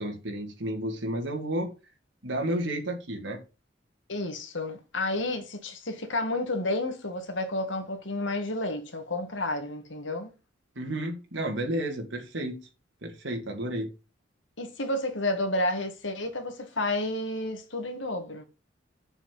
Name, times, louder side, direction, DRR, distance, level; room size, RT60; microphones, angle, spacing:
voice 1, 0.0-1.7 2.2-3.4 10.8-12.6 13.0-13.9, right 1 dB, 80° right, 2.1 m, -31 dB
voice 2, 4.1-10.3 14.6-18.4, left 1 dB, 90° left, 2.0 m, -31 dB
6.9 x 5.4 x 7.3 m
head